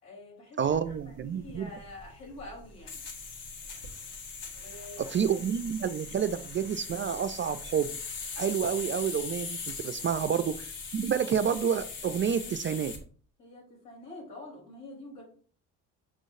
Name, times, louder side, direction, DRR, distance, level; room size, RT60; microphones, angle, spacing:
voice 1, 0.0-0.6 0.9-3.0 4.6-5.1 10.0-10.3 13.4-15.2, left 2 dB, 80° left, -3 dB, 3.7 m, -46 dB
voice 2, 0.6-1.7 5.0-7.9 8.4-12.9, right 8 dB, 25° right, 10 dB, 0.3 m, -29 dB
sound 1, 0.7-13.0, left 5 dB, 55° left, 1.7 m, -41 dB
7.6 x 6.1 x 2.6 m, 0.43 s
hypercardioid pair, 55°, 49 cm